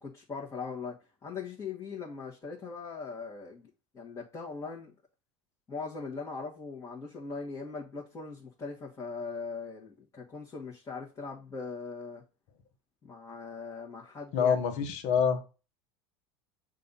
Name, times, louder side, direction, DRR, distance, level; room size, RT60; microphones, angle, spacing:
voice 1, 0.0-3.7 3.9-4.9 5.7-12.2 13.0-14.6, left 4 dB, 20° left, 1.5 m, -40 dB
voice 2, 14.3-15.4, left 6 dB, 60° left, 1.2 m, -26 dB
6.5 x 2.7 x 5.5 m
supercardioid pair, 120°, 14 cm